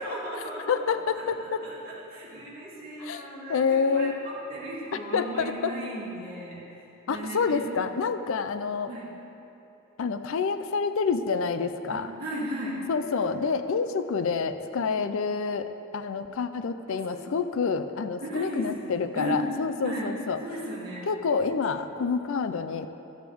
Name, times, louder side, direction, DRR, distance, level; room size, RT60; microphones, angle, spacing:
voice 1, 0.0-7.7 8.9-9.1 11.9-12.9 16.9-17.2 18.2-18.9 19.1-19.5 19.8-20.1 20.4-21.1, right 1 dB, 50° right, -7 dB, 2.5 m, -36 dB
voice 2, 0.7-1.6 3.0-3.2 3.5-4.2 5.1-5.7 7.1-8.9 10.0-12.1 12.9-20.4 21.1-22.9, left 5 dB, 70° left, 10 dB, 0.4 m, -28 dB
14.0 x 7.6 x 3.5 m, 2.9 s
head